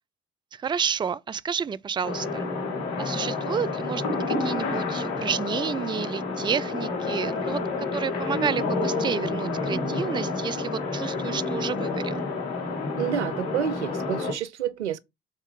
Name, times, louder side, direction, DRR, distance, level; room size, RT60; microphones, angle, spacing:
voice 1, 0.5-2.5 3.0-7.6 7.9-12.2, right 7 dB, 15° right, 0.4 m, -30 dB
sound 1, 2.0-14.3, left 3 dB, 70° left, 2.5 m, -29 dB
voice 2, 13.0-15.0, right 9 dB, 85° right, 0.5 m, -29 dB
7.0 x 4.1 x 5.0 m
figure-of-eight pair, 50°, 33 cm